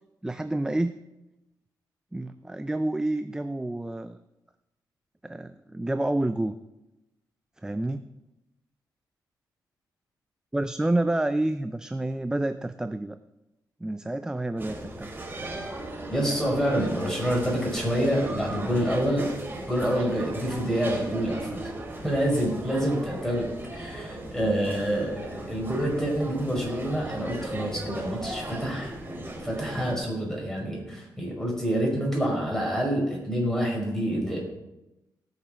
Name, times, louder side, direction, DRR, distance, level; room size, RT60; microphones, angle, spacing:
voice 1, 0.2-1.0 2.1-4.2 5.2-6.5 7.6-8.1 10.5-13.2 13.8-15.1, right 1 dB, 10° right, 10 dB, 0.5 m, -29 dB
sound 1, 14.6-29.9, right 1 dB, 30° right, 3.5 m, -37 dB
voice 2, 16.1-21.7 22.0-29.0 29.4-34.4, equal, 5° left, -2 dB, 5.2 m, -27 dB
17.5 x 6.6 x 5.8 m, 0.96 s
cardioid pair, 100°, 7 cm